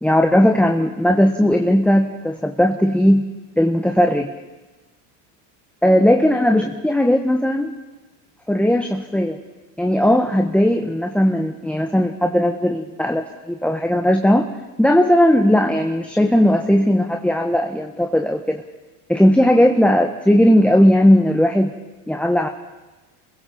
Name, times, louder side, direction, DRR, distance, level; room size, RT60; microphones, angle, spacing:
voice 1, 0.0-4.3 5.8-7.7 8.5-9.4 9.8-14.5 14.8-18.6 19.1-21.7 22.1-22.5, equal, 5° left, 3 dB, 1.4 m, -17 dB
27.5 x 21.5 x 4.4 m, 1.2 s
hypercardioid pair, 80°, 47 cm